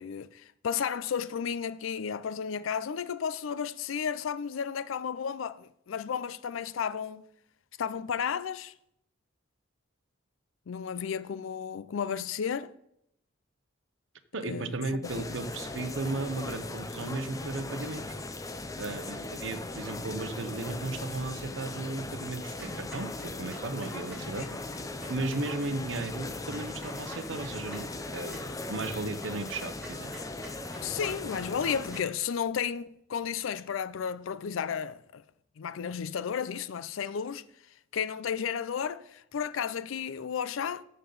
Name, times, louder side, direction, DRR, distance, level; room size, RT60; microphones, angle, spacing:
voice 1, 0.0-7.2 7.8-8.7 10.7-12.7 14.5-14.7 15.2-15.3 24.4-24.5 30.8-35.2 35.6-37.4 37.9-40.8, left 7 dB, 80° left, 0.4 m, -33 dB
voice 2, 14.3-18.1 18.8-24.5 25.1-28.4 28.7-30.1, right 3 dB, 65° right, 0.8 m, -35 dB
sound 1, 15.0-32.0, left 2 dB, 15° left, 0.5 m, -39 dB
Clock, 22.6-32.1, right 1 dB, 10° right, 3.0 m, -51 dB
13.5 x 6.7 x 3.9 m
head